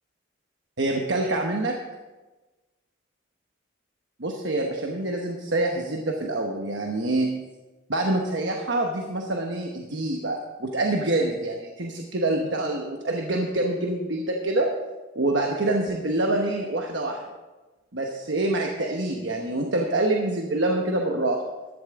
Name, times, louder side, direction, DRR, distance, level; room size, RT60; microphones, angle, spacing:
voice 1, 0.8-1.8 4.2-7.3 7.9-14.7 15.1-17.2 17.9-21.4, right 2 dB, 60° right, 2 dB, 1.1 m, -26 dB
14.5 x 11.5 x 3.7 m, 1.2 s
head